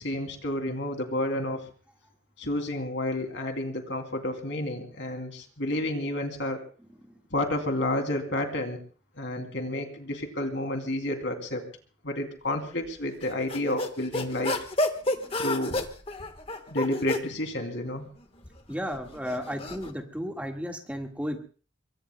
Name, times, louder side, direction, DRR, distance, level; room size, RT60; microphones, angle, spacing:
voice 1, 0.0-1.6 2.4-6.6 7.3-8.8 9.2-11.6 12.0-14.6 15.4-15.8 16.7-18.1, left 1 dB, 65° left, 4 dB, 2.9 m, -30 dB
sound 1, 13.2-17.3 18.2-19.9, left 2 dB, 30° left, 1.3 m, -31 dB
voice 2, 15.1-15.4 16.5-16.6 18.7-21.4, equal, 5° right, 2 dB, 1.7 m, -34 dB
26.5 x 23.0 x 2.2 m, 0.39 s
head